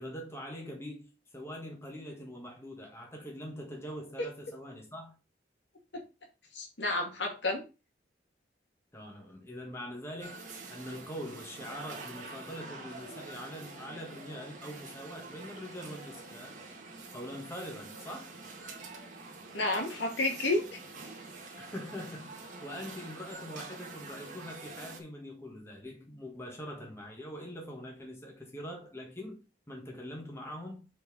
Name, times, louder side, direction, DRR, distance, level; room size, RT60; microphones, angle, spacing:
voice 1, 0.0-5.1 8.9-16.6 17.1-18.4 21.6-29.4 29.7-30.9, equal, 15° left, 1.5 m, -43 dB
voice 2, 6.5-7.6 19.5-20.6, left 2 dB, 70° left, 2.3 m, -30 dB
sound 1, 10.2-25.0, right 3 dB, 40° right, 1.5 m, -46 dB
5.3 x 4.5 x 5.4 m
head